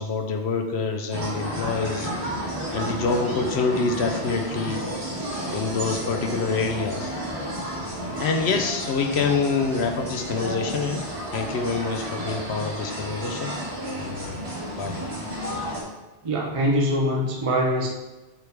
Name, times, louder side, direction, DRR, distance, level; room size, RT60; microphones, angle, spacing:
voice 1, 0.0-2.1 2.7-4.8 5.5-7.1 8.2-11.1 11.3-13.5 13.9-14.4 14.7-15.0, left 4 dB, 75° left, 5 dB, 0.9 m, -26 dB
sound 1, 1.1-15.8, equal, 75° right, 2.3 m, -32 dB
voice 2, 16.2-17.9, equal, 35° right, -2 dB, 0.8 m, -23 dB
7.2 x 4.6 x 3.5 m, 1.1 s
omnidirectional pair, 1.1 m